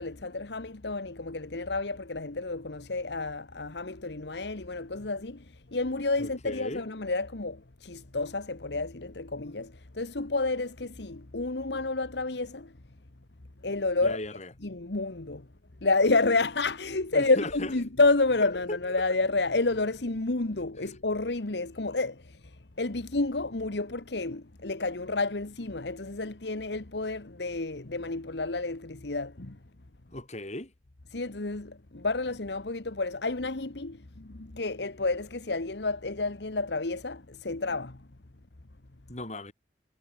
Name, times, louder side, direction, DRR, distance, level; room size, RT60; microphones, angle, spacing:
voice 1, 0.0-5.4 5.7-12.7 13.6-14.2 14.6-15.5 15.8-22.4 22.8-29.6 31.1-38.0, left 3 dB, 70° left, 1.4 m, -30 dB
voice 2, 6.2-6.8 14.0-14.5 17.1-17.7 18.4-18.8 30.1-30.7 39.1-39.5, left 1 dB, 40° left, 5.7 m, -37 dB
head